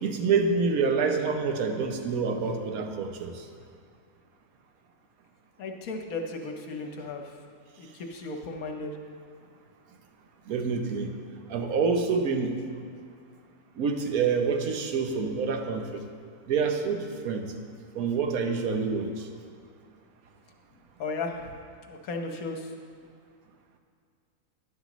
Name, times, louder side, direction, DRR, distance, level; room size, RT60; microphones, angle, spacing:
voice 1, 0.0-3.4 10.5-11.1 11.5-12.6 13.8-16.0 16.5-17.5 17.9-19.3, right 5 dB, 70° right, 5 dB, 1.2 m, -27 dB
voice 2, 5.6-7.3 7.8-8.9 21.0-21.5 21.9-22.7, left 3 dB, 70° left, 3 dB, 1.3 m, -35 dB
11.5 x 11.0 x 3.1 m, 2.2 s
omnidirectional pair, 1.6 m